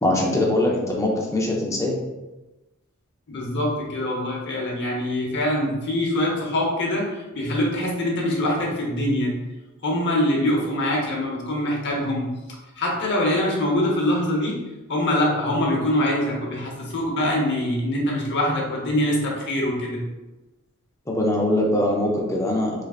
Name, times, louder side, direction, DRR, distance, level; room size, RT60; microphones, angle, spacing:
voice 1, 0.0-2.0 21.1-22.8, left 1 dB, 15° left, -1 dB, 0.6 m, -22 dB
voice 2, 3.3-9.3 9.8-12.3 12.8-14.6 14.9-20.0, left 1 dB, 55° left, -2 dB, 0.8 m, -24 dB
3.8 x 3.3 x 2.4 m, 1.1 s
head